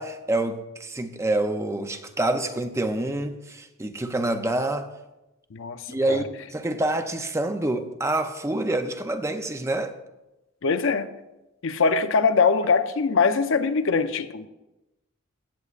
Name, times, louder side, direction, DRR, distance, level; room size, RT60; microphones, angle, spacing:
voice 1, 0.0-4.9 5.9-10.0, right 2 dB, 15° right, 0.5 m, -27 dB
voice 2, 5.5-6.2 10.6-11.1 11.6-14.5, left 5 dB, 65° left, 0.6 m, -22 dB
16.0 x 8.0 x 2.5 m
head